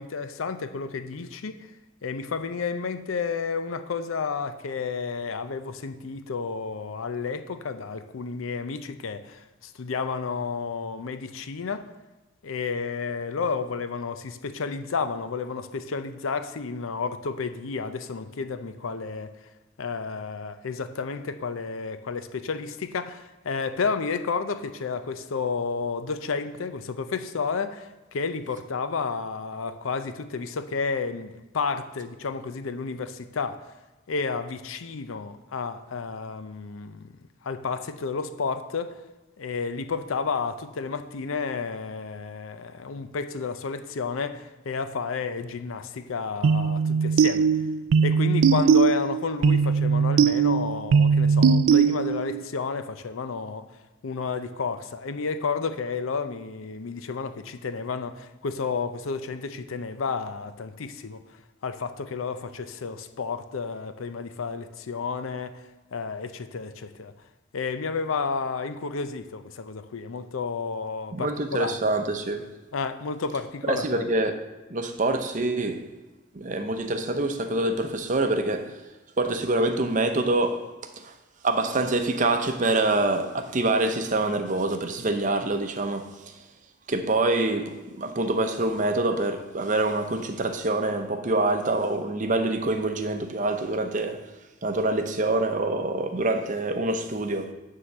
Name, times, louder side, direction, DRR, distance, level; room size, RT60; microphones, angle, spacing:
voice 1, 0.0-1.7 2.0-11.9 12.4-19.3 19.8-33.7 34.1-37.1 37.4-39.0 39.4-47.5 48.0-53.6 54.0-61.2 61.6-67.1 67.5-71.8 72.7-74.1, left 5 dB, 85° left, 0.5 m, -31 dB
sound 1, 46.4-52.4, right 6 dB, 80° right, 0.3 m, -20 dB
voice 2, 71.1-72.5 73.7-74.4 74.7-75.8 76.3-78.8 79.2-80.6 81.0-81.1 81.4-86.1 86.9-94.3 94.6-97.5, right 2 dB, 40° right, 0.6 m, -25 dB
9.6 x 3.8 x 6.5 m
head